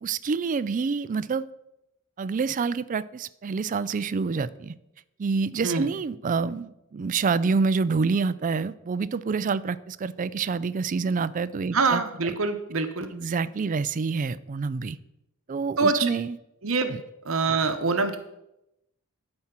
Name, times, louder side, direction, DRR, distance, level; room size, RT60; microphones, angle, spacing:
voice 1, 0.0-1.4 2.2-4.7 5.2-12.3 13.1-15.0 15.5-16.4 16.9-17.0, right 4 dB, 35° right, 16 dB, 0.4 m, -27 dB
voice 2, 11.7-13.1 15.8-16.1 16.6-16.9 17.2-18.2, right 4 dB, 65° right, 7 dB, 0.9 m, -24 dB
12.5 x 4.4 x 5.9 m, 0.87 s
head